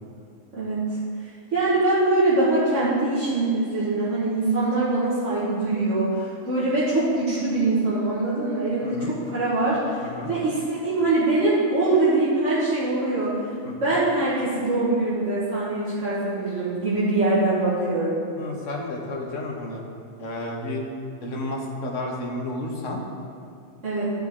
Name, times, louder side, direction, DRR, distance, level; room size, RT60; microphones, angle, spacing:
voice 1, 0.5-1.0 1.5-10.0 10.3-13.4 13.8-18.2 23.8-24.1, right 2 dB, 70° right, -10 dB, 1.9 m, -23 dB
voice 2, 8.8-9.1 10.0-10.3 13.6-13.9 18.4-19.8 20.2-20.8 21.2-23.0, left 1 dB, 80° left, 0 dB, 1.5 m, -32 dB
13.5 x 5.5 x 3.6 m, 2.4 s
omnidirectional pair, 1.3 m